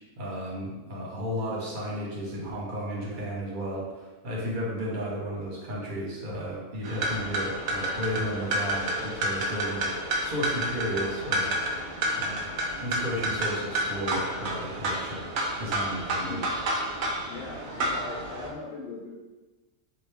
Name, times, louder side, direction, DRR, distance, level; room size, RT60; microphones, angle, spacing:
voice 1, 0.2-9.9 10.2-11.5 12.1-12.5 12.8-15.3 15.6-16.5, equal, 45° right, -4 dB, 0.8 m, -33 dB
sound 1, 6.8-18.5, right 1 dB, 70° right, 0.4 m, -30 dB
voice 2, 16.2-16.5 17.3-19.1, left 3 dB, 65° left, -6 dB, 0.6 m, -39 dB
3.0 x 2.5 x 3.2 m, 1.2 s
omnidirectional pair, 1.4 m